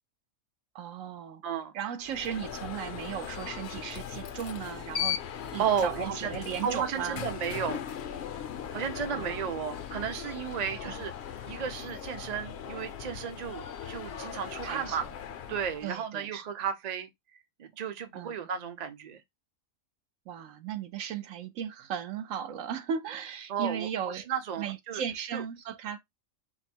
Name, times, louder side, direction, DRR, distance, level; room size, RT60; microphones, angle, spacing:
voice 1, 0.7-1.4 1.7-5.2 5.5-7.2 9.1-9.5 10.8-10.9 14.6-15.0 15.8-16.4 18.1-18.5 20.3-24.3 24.6-26.0, right 8 dB, 80° right, 1.0 m, -36 dB
voice 2, 1.4-1.7 3.7-3.8 5.6-6.3 6.6-7.8 8.7-11.1 11.5-15.1 15.5-17.1 17.6-19.2 23.5-23.9 24.1-25.0 25.3-25.4, right 7 dB, 45° right, 0.6 m, -33 dB
Alarm, 2.0-16.0, left 9 dB, 65° left, 0.8 m, -39 dB
4.3 x 2.1 x 4.2 m
omnidirectional pair, 1.4 m